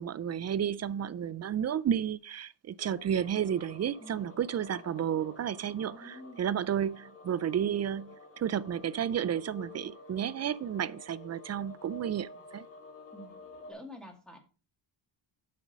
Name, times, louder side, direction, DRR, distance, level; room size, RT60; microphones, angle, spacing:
voice 1, 0.0-12.6, right 9 dB, 40° right, 0.4 m, -32 dB
sound 1, 2.8-13.7, left 2 dB, 30° left, 2.4 m, -51 dB
voice 2, 4.0-4.3 5.7-6.4 13.1-13.3 13.7-14.4, equal, ahead, 2.4 m, -48 dB
8.5 x 6.0 x 5.1 m
cardioid pair, 130°, 45 cm